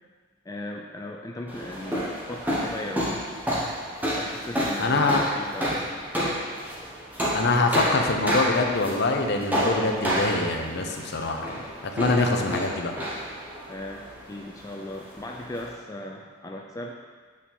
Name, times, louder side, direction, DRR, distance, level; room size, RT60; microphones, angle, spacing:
voice 1, 0.5-3.2 4.1-5.9 13.7-16.9, left 1 dB, 15° left, 0 dB, 0.3 m, -37 dB
sound 1, 1.5-15.7, equal, 10° right, 1.0 m, -30 dB
voice 2, 4.8-5.2 7.3-11.6 12.0-12.9, left 3 dB, 55° left, 3 dB, 0.6 m, -24 dB
8.3 x 3.7 x 4.3 m, 1.5 s
head